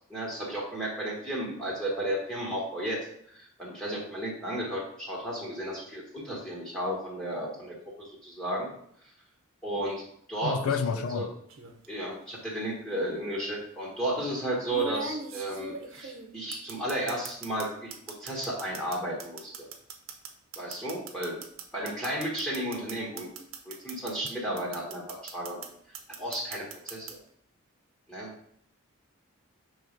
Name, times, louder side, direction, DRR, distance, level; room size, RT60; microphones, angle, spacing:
voice 1, 0.1-3.1 3.3-8.7 9.6-10.0 10.3-11.3 11.9-17.9 18.2-19.7 20.6-21.4 21.7-23.3 23.6-25.6 26.2-27.2 28.1-28.3, right 1 dB, 5° left, 1.2 m, -33 dB
voice 2, 10.4-11.3, left 6 dB, 85° left, 0.4 m, -29 dB
sound 1, 11.5-11.9 13.1-13.2 14.7-17.7 17.9-24.3 24.6-25.7 25.9-27.1, right 5 dB, 65° right, 0.9 m, -39 dB
6.1 x 3.2 x 5.1 m
head